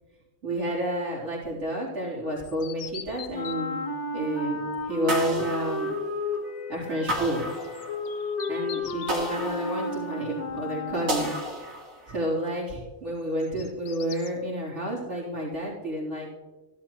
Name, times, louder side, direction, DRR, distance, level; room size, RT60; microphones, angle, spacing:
voice 1, 0.4-3.8 4.1-4.6 4.8-6.0 6.7-7.5 8.5-11.3 12.1-16.3, right 1 dB, 60° right, -7 dB, 3.9 m, -30 dB
sound 1, 2.4-3.6 7.0-9.3 13.2-14.3, left 9 dB, 60° left, 0.8 m, -43 dB
Wind instrument woodwind instrument, 3.3-11.6, left 2 dB, 30° left, 1.4 m, -33 dB
sound 2, 5.1-6.4 7.1-8.3 9.1-10.3 11.1-12.3, equal, 80° right, 2.3 m, -33 dB
14.0 x 12.0 x 3.0 m, 1.2 s
omnidirectional pair, 1.4 m